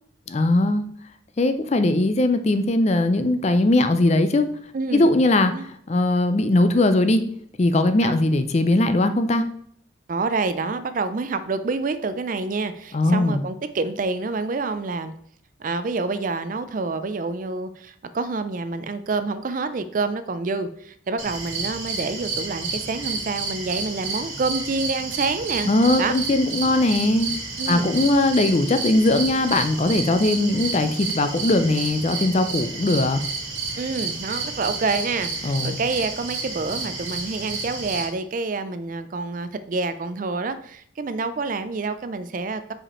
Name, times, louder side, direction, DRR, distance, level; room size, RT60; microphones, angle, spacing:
voice 1, 0.3-0.8 1.4-4.5 4.9-5.5 5.9-7.2 7.6-9.4 12.9-13.4 25.6-27.3 27.7-33.2 35.4-35.8, left 2 dB, 35° left, 9 dB, 0.4 m, -20 dB
voice 2, 4.7-5.1 5.5-5.6 8.0-8.2 10.1-15.1 15.6-25.7 26.0-26.1 27.6-27.9 33.8-42.6, right 3 dB, 40° right, 12 dB, 0.4 m, -27 dB
sound 1, 21.2-38.1, right 4 dB, 90° right, 2.1 m, -31 dB
5.0 x 4.9 x 4.2 m, 0.66 s
head